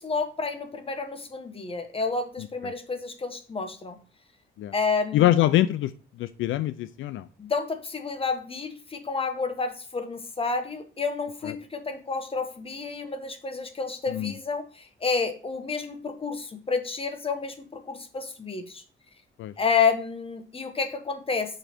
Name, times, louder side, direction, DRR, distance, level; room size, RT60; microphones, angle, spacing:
voice 1, 0.0-4.0 4.7-5.3 7.4-18.8 19.6-21.6, left 5 dB, 30° left, 7 dB, 1.3 m, -30 dB
voice 2, 2.4-2.7 4.6-4.7 5.1-5.9 6.2-7.3 11.5-11.6 14.1-14.3 19.4-19.5, left 13 dB, 80° left, 14 dB, 0.4 m, -24 dB
6.1 x 5.3 x 4.4 m, 0.39 s
cardioid pair, 90°, 20 cm